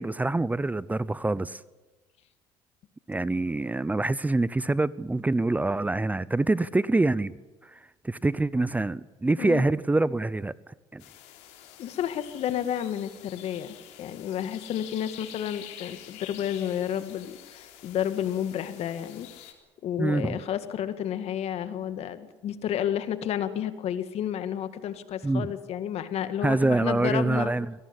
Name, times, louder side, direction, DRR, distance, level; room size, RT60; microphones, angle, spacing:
voice 1, 0.0-1.6 3.1-7.3 7.6-7.8 8.0-10.5 10.9-11.0 20.0-20.4 25.2-25.5 26.4-27.7, right 2 dB, 15° right, 19 dB, 0.7 m, -25 dB
sound 1, 11.0-19.5, left 11 dB, 80° left, 3.8 m, -47 dB
voice 2, 11.8-19.3 19.8-27.6, left 10 dB, 60° left, 11 dB, 2.0 m, -31 dB
23.0 x 18.0 x 9.8 m, 1.2 s
supercardioid pair, 75°, 12 cm